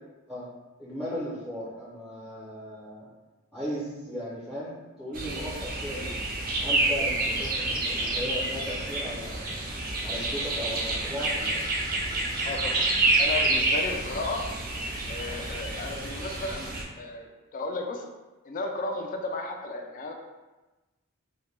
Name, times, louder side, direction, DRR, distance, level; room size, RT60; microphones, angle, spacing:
voice 1, 0.8-3.0 3.5-6.2 6.6-9.5 10.0-11.6, equal, ahead, -8 dB, 0.6 m, -36 dB
sound 1, 5.1-16.8, right 2 dB, 45° right, 0.4 m, -28 dB
voice 2, 12.4-12.8 13.2-14.4 15.1-16.7 17.0-18.0 18.4-20.1, left 2 dB, 40° left, 3 dB, 0.3 m, -34 dB
2.2 x 2.1 x 3.1 m, 1.1 s
head